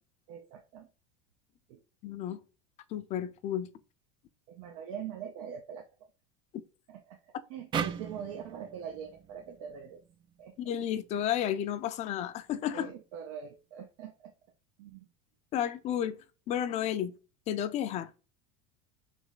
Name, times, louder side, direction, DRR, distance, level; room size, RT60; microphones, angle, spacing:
voice 1, 0.3-0.9 1.7-1.8 4.5-5.9 6.9-10.0 10.4-10.6 12.7-14.3 14.8-15.1, right 8 dB, 75° right, 0.6 m, -43 dB
voice 2, 2.0-2.4 2.9-3.7 10.6-12.9 15.5-16.2 16.5-17.1 17.5-18.1, left 10 dB, 40° left, 0.5 m, -32 dB
sound 1, 7.7-11.0, right 7 dB, 30° right, 0.4 m, -39 dB
3.4 x 3.1 x 3.9 m
supercardioid pair, 115°, 17 cm